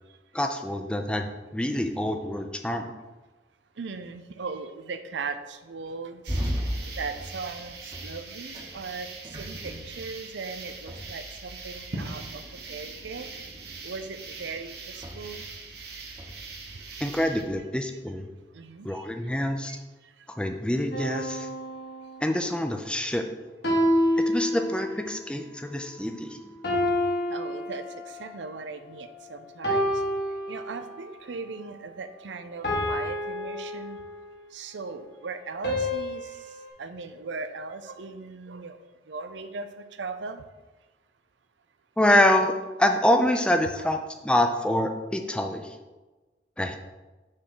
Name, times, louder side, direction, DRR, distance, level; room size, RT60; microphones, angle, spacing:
voice 1, 0.3-2.9 17.0-18.3 18.8-19.8 20.4-21.5 22.2-23.3 24.3-26.4 42.0-42.5 42.8-45.7 46.6-46.8, left 1 dB, 5° left, 5 dB, 0.4 m, -26 dB
voice 2, 3.8-12.4 12.7-13.3 13.8-15.5 18.5-19.1 19.7-19.8 27.3-30.0 30.5-34.0 34.5-36.3 36.8-38.8 39.1-40.4 43.8-43.9, right 4 dB, 85° right, 9 dB, 0.6 m, -38 dB
sound 1, 6.2-17.4, right 3 dB, 60° right, 1.1 m, -42 dB
sound 2, 6.3-17.6, equal, 20° right, 0.9 m, -39 dB
sound 3, 20.9-22.6 23.6-25.1 26.6-28.3 29.6-31.2 32.6-34.4 35.6-36.7, left 1 dB, 65° left, 1.7 m, -28 dB
6.4 x 3.7 x 6.0 m, 1.2 s
head